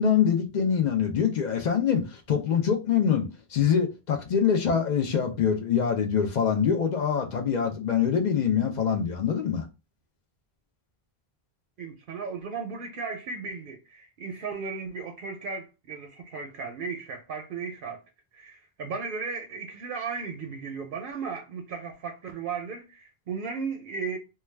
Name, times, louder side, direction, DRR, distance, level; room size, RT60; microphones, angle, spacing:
voice 1, 0.0-9.7, left 7 dB, 55° left, 0.6 m, -24 dB
voice 2, 11.8-18.0 18.3-24.2, right 5 dB, 65° right, 0.7 m, -35 dB
2.3 x 2.2 x 3.2 m
omnidirectional pair, 1.1 m